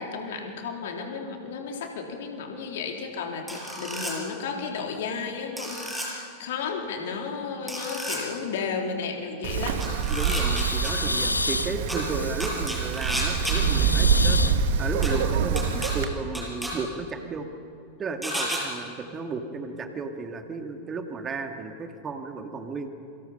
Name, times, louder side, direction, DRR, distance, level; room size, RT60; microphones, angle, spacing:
voice 1, 0.0-9.8, left 5 dB, 55° left, 2 dB, 3.5 m, -33 dB
sound 1, 3.5-4.1 5.6-6.1 7.7-8.2 9.8-10.9 11.9-12.0 12.4-13.5 15.0-15.1 15.6-15.9 16.3-16.7 18.2-18.6, equal, ahead, 7.0 m, -31 dB
Wind, 9.4-16.0, right 6 dB, 55° right, 1.9 m, -25 dB
sound 2, 9.5-9.9 10.3-12.8 13.3-14.6, left 3 dB, 80° left, 0.9 m, -31 dB
voice 2, 10.1-14.4 14.8-17.5 18.0-22.9, right 4 dB, 20° right, 5 dB, 2.2 m, -34 dB
28.0 x 25.5 x 5.7 m, 2.5 s
figure-of-eight pair, 90°, 0 cm